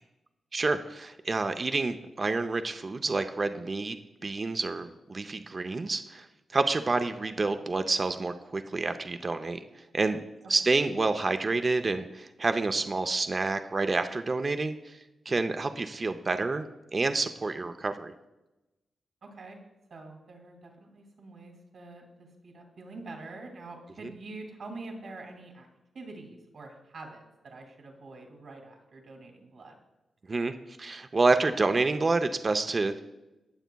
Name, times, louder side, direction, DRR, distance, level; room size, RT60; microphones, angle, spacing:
voice 1, 0.5-4.0 4.2-6.3 6.5-9.6 9.9-10.2 10.5-15.0 15.3-18.1 24.0-24.1 30.3-33.0, right 3 dB, 45° right, 8 dB, 0.6 m, -28 dB
voice 2, 19.2-19.6 19.9-25.7 25.9-29.7, right 2 dB, 70° right, 2 dB, 2.3 m, -45 dB
18.5 x 6.9 x 2.3 m, 1.0 s
cardioid pair, 50°, 0 cm